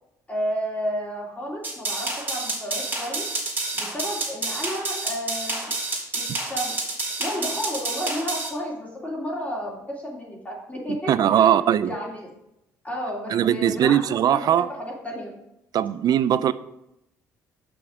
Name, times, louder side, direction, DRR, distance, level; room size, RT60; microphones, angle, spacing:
voice 1, 0.3-3.3 3.7-5.7 6.1-6.7 7.2-12.3 12.8-15.3, equal, 20° left, -5 dB, 2.9 m, -32 dB
sound 1, 1.6-8.5, right 2 dB, 25° right, 3.1 m, -29 dB
voice 2, 11.1-11.9 13.3-14.7 15.7-16.5, right 10 dB, 55° right, 16 dB, 0.4 m, -20 dB
6.1 x 6.1 x 5.0 m, 0.85 s
hypercardioid pair, 60°, 8 cm